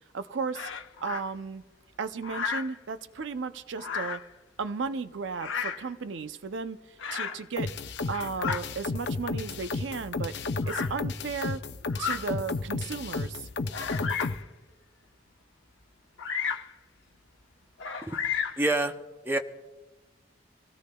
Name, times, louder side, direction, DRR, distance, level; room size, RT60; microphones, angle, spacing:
voice 1, 0.1-0.7 1.0-1.6 2.0-4.2 4.6-6.8 7.1-7.8 8.1-10.4 10.7-11.6 12.0-13.5, right 5 dB, 75° right, 0.5 m, -34 dB
Bird vocalization bird call bird song, 0.5-1.2 2.2-2.8 3.8-4.3 5.3-5.9 7.0-7.4 8.0-8.6 9.5-9.6 10.6-10.9 11.9-12.2 12.9-13.0 13.7-14.4 16.2-16.7 17.8-18.7, left 6 dB, 90° left, 0.9 m, -33 dB
sound 1, 7.6-14.4, left 3 dB, 60° left, 0.6 m, -32 dB
voice 2, 18.6-18.9 19.2-19.4, right 2 dB, 10° right, 0.6 m, -26 dB
26.5 x 16.5 x 2.3 m
head